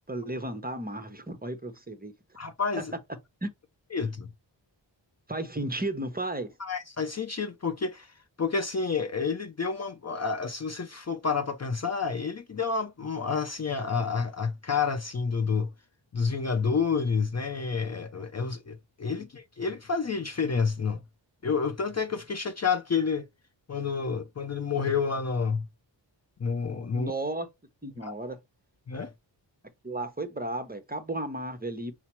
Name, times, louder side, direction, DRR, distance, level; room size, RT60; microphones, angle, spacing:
voice 1, 0.1-2.1 3.4-3.5 5.3-6.5 19.2-19.3 26.9-27.5 27.8-28.4 29.8-31.9, right 2 dB, 20° right, 0.7 m, -34 dB
voice 2, 2.4-2.9 3.9-4.3 6.6-8.1 8.4-15.7 16.1-21.0 21.4-23.3 23.7-25.7 26.4-27.1 28.0-28.1 28.9-29.1, left 5 dB, 35° left, 0.5 m, -29 dB
5.6 x 2.0 x 4.3 m
wide cardioid pair, 100°, 45 cm